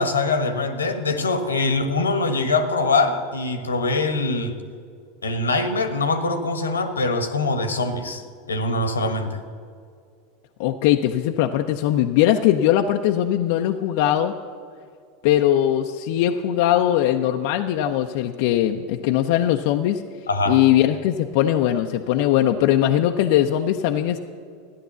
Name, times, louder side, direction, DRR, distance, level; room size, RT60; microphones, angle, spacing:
voice 1, 0.0-4.5 5.2-8.2 8.5-9.4 20.3-20.6, left 3 dB, 85° left, 9 dB, 1.2 m, -23 dB
voice 2, 10.6-14.3 15.2-20.0 20.5-24.2, left 12 dB, 60° left, 4 dB, 0.6 m, -20 dB
14.0 x 10.0 x 7.0 m, 2.3 s
hypercardioid pair, 85°, 0 cm